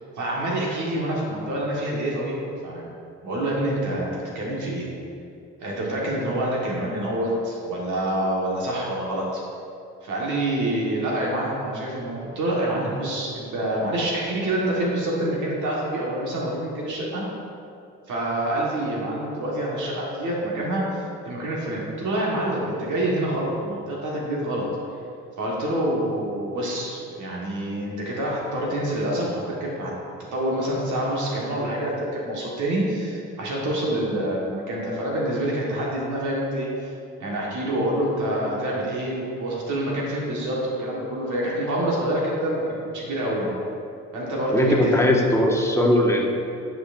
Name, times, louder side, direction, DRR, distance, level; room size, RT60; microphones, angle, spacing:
voice 1, 0.2-2.9 3.2-4.9 5.6-9.4 10.0-17.2 18.1-24.6 25.4-29.9 30.3-36.7 37.2-43.5 44.1-45.1, right 1 dB, 75° right, -4 dB, 1.6 m, -26 dB
voice 2, 44.5-46.3, left 1 dB, 10° left, 0 dB, 0.9 m, -19 dB
9.5 x 5.8 x 2.6 m, 2.6 s
cardioid pair, 90°, 30 cm